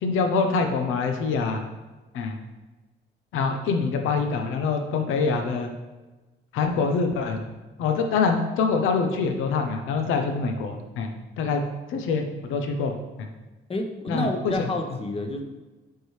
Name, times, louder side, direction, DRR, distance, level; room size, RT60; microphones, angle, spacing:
voice 1, 0.0-1.6 2.1-2.4 3.3-5.7 6.5-7.4 7.8-11.1 11.4-11.6 11.9-12.2 12.5-12.9 13.2-13.3 14.1-14.7, left 4 dB, 90° left, 5 dB, 0.7 m, -25 dB
voice 2, 13.7-15.4, left 1 dB, 30° left, 4 dB, 1.0 m, -29 dB
7.8 x 4.6 x 3.2 m, 1.2 s
cardioid pair, 90°, 20 cm